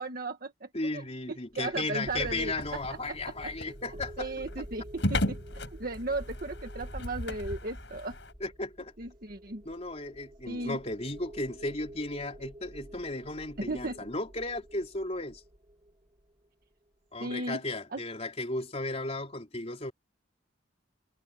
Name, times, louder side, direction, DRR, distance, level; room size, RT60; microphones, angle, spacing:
voice 1, 0.0-2.8 3.1-3.5 4.2-5.4 5.7-8.2 9.0-9.6 10.5-10.8 13.6-14.0 17.2-17.6 17.9-18.0, right 2 dB, 55° right, 1.8 m, -36 dB
voice 2, 0.7-4.3 8.4-8.9 9.7-15.4 17.1-19.9, left 2 dB, 35° left, 3.8 m, -35 dB
sound 1, 1.5-16.6, equal, 30° right, 7.4 m, -48 dB
sound 2, 2.0-8.3, left 1 dB, 75° left, 6.7 m, -36 dB
head